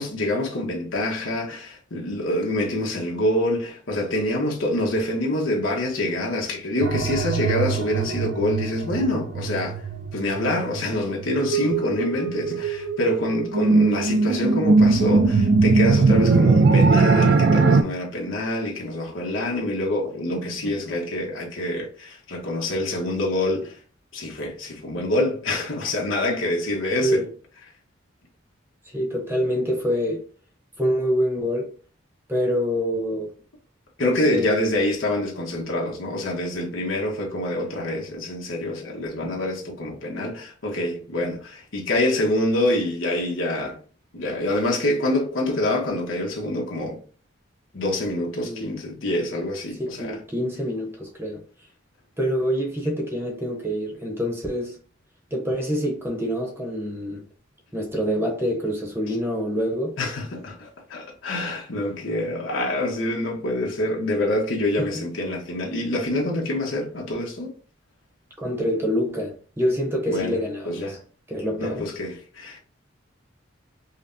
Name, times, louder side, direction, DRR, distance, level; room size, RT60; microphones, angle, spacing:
voice 1, 0.0-9.8 10.1-23.8 24.1-27.2 34.0-43.8 44.1-47.0 47.7-50.2 60.0-67.5 70.1-70.4 70.6-71.0 71.6-72.6, left 1 dB, 85° left, 1.1 m, -26 dB
sound 1, 6.8-17.8, right 3 dB, 55° right, 0.4 m, -20 dB
voice 2, 28.9-30.2 30.8-31.7 32.3-33.3 34.0-34.5 48.4-48.8 49.8-51.4 52.2-54.8 55.3-57.2 57.7-60.0 64.8-64.9 68.4-71.0 71.3-71.8, equal, 10° right, 0.8 m, -26 dB
5.5 x 2.2 x 2.7 m
head